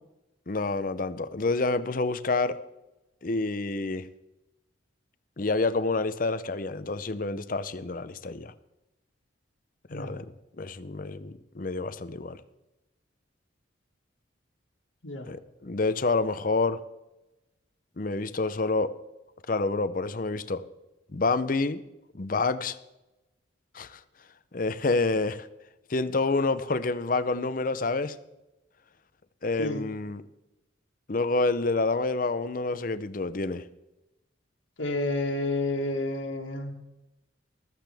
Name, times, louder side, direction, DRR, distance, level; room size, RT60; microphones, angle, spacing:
voice 1, 0.5-2.6 3.2-4.1 5.4-8.5 9.9-10.3 10.6-12.4 15.3-16.8 18.0-18.9 19.5-20.6 21.1-21.8 22.1-22.8 23.7-24.0 24.5-25.5 25.9-28.2 29.4-30.2 31.1-33.6, left 3 dB, 45° left, 0.6 m, -28 dB
voice 2, 34.8-36.7, left 2 dB, 90° left, 1.9 m, -30 dB
15.0 x 13.5 x 3.5 m
head